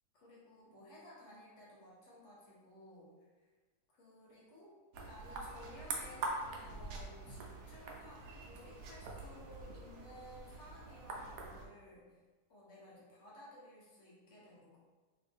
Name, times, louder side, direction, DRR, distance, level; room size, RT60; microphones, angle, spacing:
voice 1, 0.1-3.1 3.4-3.5 3.9-4.7 5.1-12.2 12.5-14.8, left 1 dB, 55° left, -6 dB, 0.9 m, -56 dB
sound 1, 4.9-11.7, right 3 dB, 80° right, 0.8 m, -44 dB
2.8 x 2.5 x 3.4 m, 1.4 s
omnidirectional pair, 2.0 m